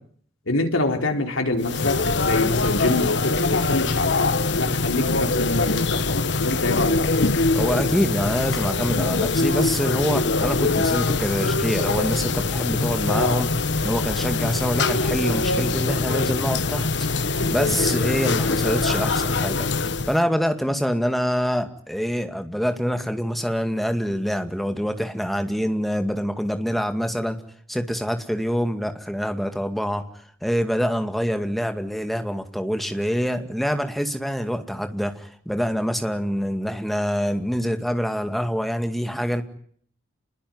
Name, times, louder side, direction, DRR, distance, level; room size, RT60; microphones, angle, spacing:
voice 1, 0.5-7.1, left 2 dB, 90° left, 4.3 m, -25 dB
sound 1, 1.6-20.2, left 3 dB, 60° left, 1.2 m, -23 dB
voice 2, 7.5-13.5 13.8-16.9 17.2-27.4 27.7-30.0 30.4-39.4, equal, ahead, 2.1 m, -25 dB
28.5 x 21.0 x 9.5 m
head